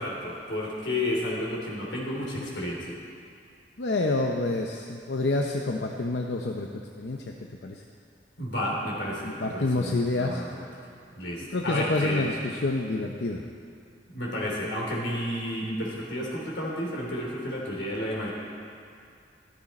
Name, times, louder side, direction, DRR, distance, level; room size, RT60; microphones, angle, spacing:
voice 1, 0.0-3.0 8.4-10.7 11.1-12.3 14.1-18.3, left 1 dB, 90° left, -3 dB, 3.1 m, -31 dB
voice 2, 3.8-6.7 7.0-7.2 7.6-7.8 9.2-10.4 11.5-13.4, left 2 dB, 70° left, 1 dB, 0.7 m, -28 dB
13.5 x 13.0 x 4.3 m, 2.4 s
head